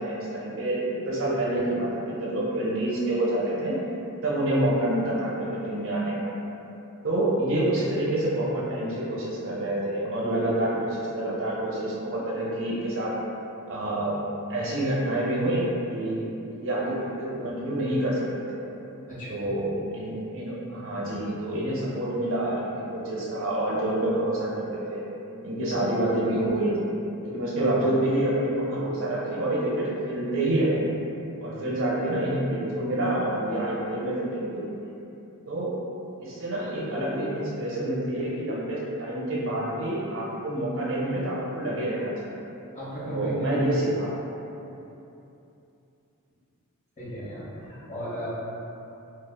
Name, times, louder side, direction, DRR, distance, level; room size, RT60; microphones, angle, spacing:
voice 1, 0.0-3.7 4.2-6.3 7.0-13.2 13.7-14.2 14.5-16.3 16.6-18.6 19.3-25.0 25.4-26.9 27.2-30.8 31.4-34.6 35.5-35.8 36.2-42.3 43.0-44.2, right 1 dB, 60° right, -6 dB, 0.7 m, -27 dB
voice 2, 19.1-19.4 42.7-43.7 47.0-48.3, equal, 35° left, -11 dB, 1.1 m, -34 dB
2.4 x 2.3 x 3.5 m, 2.9 s
head